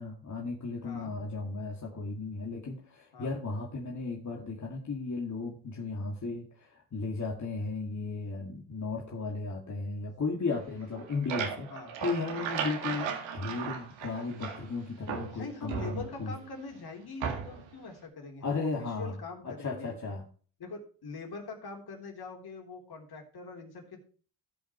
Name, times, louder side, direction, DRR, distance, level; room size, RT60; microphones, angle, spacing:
voice 1, 0.0-11.7 12.0-16.3 18.4-19.1 19.4-20.2, left 3 dB, 35° left, -1 dB, 2.3 m, -35 dB
voice 2, 0.8-1.1 3.1-3.3 11.7-11.9 15.3-19.9 20.6-24.0, left 4 dB, 55° left, 2 dB, 3.6 m, -43 dB
sound 1, 10.8-14.7 15.1-16.4 17.2-17.7, right 7 dB, 75° right, 2.2 m, -36 dB
14.5 x 5.3 x 4.5 m, 0.41 s
supercardioid pair, 65°, 47 cm